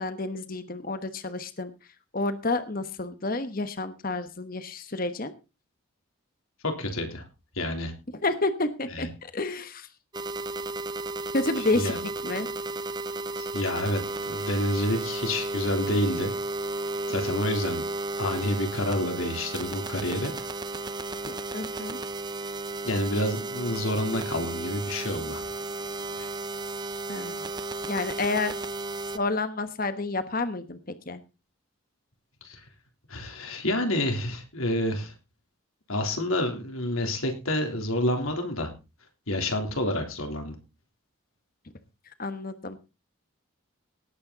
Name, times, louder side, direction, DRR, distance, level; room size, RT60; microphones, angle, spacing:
voice 1, 0.0-1.7 2.1-5.3 8.2-9.9 11.3-12.5 21.3-22.0 27.1-27.5 27.9-28.5 29.1-30.8 31.1-31.2 42.2-42.8, left 2 dB, 40° left, 11 dB, 1.1 m, -30 dB
voice 2, 6.6-7.2 7.6-7.9 8.9-9.1 11.8-12.0 13.3-16.3 17.1-17.8 18.2-20.3 22.8-25.4 32.4-32.6 33.1-35.1 35.9-38.7 39.3-40.6, left 1 dB, 75° left, 4 dB, 3.5 m, -28 dB
sound 1, 10.1-29.2, right 2 dB, 20° right, 0.6 m, -33 dB
18.0 x 8.8 x 4.0 m, 0.30 s
head